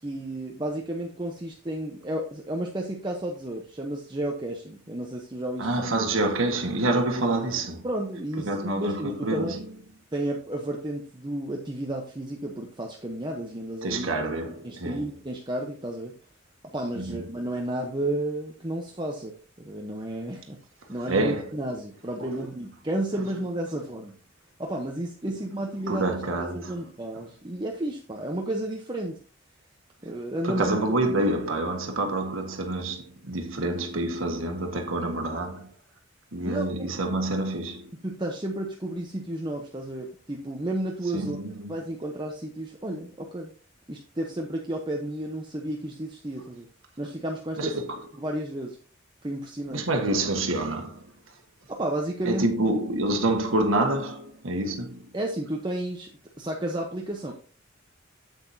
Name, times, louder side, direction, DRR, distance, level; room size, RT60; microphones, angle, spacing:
voice 1, 0.0-5.9 7.8-9.6 10.1-14.1 14.6-16.1 16.6-20.6 20.9-24.2 24.6-26.2 26.5-29.2 30.0-30.8 36.4-36.7 38.0-41.4 41.7-43.5 43.9-46.7 47.0-47.8 48.2-48.8 49.2-49.8 51.7-52.5 55.1-56.1 56.4-57.3, right 1 dB, 25° right, 0.9 m, -32 dB
voice 2, 5.6-7.8 8.4-9.6 13.8-15.0 16.9-17.2 21.1-21.5 22.2-22.3 25.9-26.8 30.4-35.7 36.3-37.9 41.1-41.7 47.6-48.0 49.7-51.0 52.2-55.0, right 2 dB, 85° right, 1.6 m, -27 dB
8.3 x 8.2 x 2.8 m
head